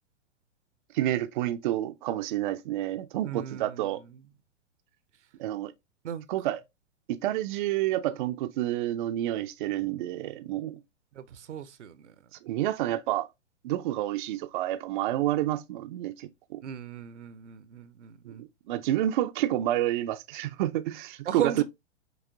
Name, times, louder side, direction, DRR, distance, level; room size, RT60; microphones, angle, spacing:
voice 1, 0.9-4.0 5.4-5.7 6.3-6.6 7.1-10.8 12.4-13.3 13.6-16.6 18.3-21.6, right 13 dB, 45° right, 0.5 m, -29 dB
voice 2, 3.2-3.9 6.0-6.3 11.2-12.1 16.6-18.4 21.3-21.6, right 9 dB, 75° right, 0.8 m, -36 dB
6.0 x 2.9 x 2.7 m
hypercardioid pair, 120°, 36 cm